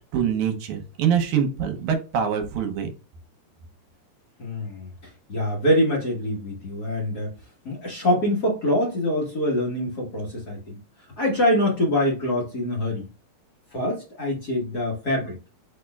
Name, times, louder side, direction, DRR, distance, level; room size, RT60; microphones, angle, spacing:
voice 1, 0.1-2.9, right 8 dB, 75° right, 6 dB, 2.0 m, -24 dB
voice 2, 4.4-4.9 5.3-7.3 7.6-13.1 13.7-15.4, left 1 dB, 65° left, -4 dB, 0.9 m, -24 dB
4.7 x 4.2 x 2.3 m, 0.32 s
omnidirectional pair, 3.8 m